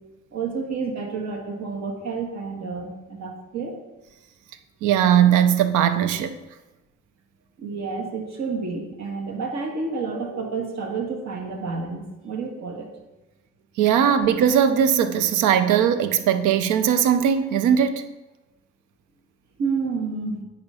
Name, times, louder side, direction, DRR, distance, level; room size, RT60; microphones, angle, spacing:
voice 1, 0.3-3.8 7.6-12.9 19.6-20.4, right 4 dB, 65° right, 1.5 m, -30 dB
voice 2, 4.8-6.4 13.8-18.0, right 9 dB, 85° right, 0.6 m, -19 dB
8.7 x 2.9 x 5.5 m
cardioid pair, 90°, 30 cm